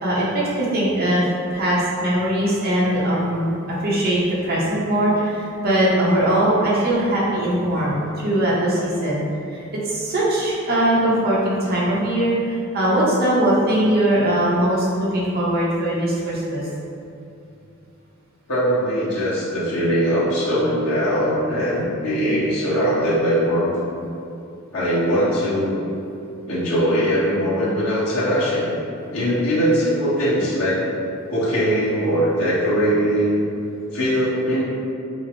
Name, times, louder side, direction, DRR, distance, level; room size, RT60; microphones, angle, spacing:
voice 1, 0.0-9.2 9.5-16.7, right 1 dB, 45° right, -7 dB, 0.9 m, -21 dB
voice 2, 18.5-23.7 24.7-25.7 26.5-28.8 29.1-30.8 31.3-33.4 33.9-34.6, equal, 80° left, -9 dB, 1.3 m, -21 dB
5.4 x 2.1 x 3.1 m, 2.7 s
head